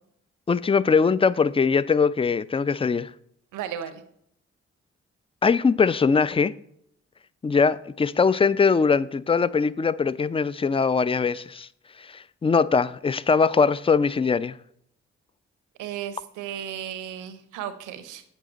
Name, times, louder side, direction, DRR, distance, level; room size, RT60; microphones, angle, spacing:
voice 1, 0.5-3.1 5.4-6.5 7.4-11.7 12.1-14.6, left 5 dB, 20° left, 0.4 m, -21 dB
voice 2, 3.5-4.0 15.8-18.2, right 10 dB, 80° right, 0.9 m, -34 dB
7.8 x 7.4 x 4.0 m
hypercardioid pair, 40°, 31 cm